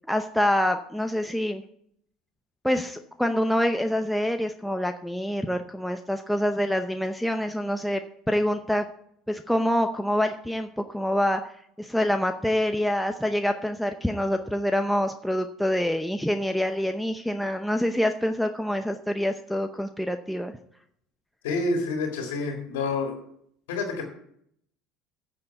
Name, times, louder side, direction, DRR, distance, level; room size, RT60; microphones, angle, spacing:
voice 1, 0.1-1.6 2.6-8.0 8.3-8.9 9.3-11.5 11.8-20.5, equal, ahead, 6 dB, 0.7 m, -26 dB
voice 2, 21.4-23.2 23.7-24.0, left 3 dB, 90° left, 2 dB, 2.1 m, -28 dB
9.3 x 6.9 x 8.2 m, 0.69 s
supercardioid pair, 95°, 0 cm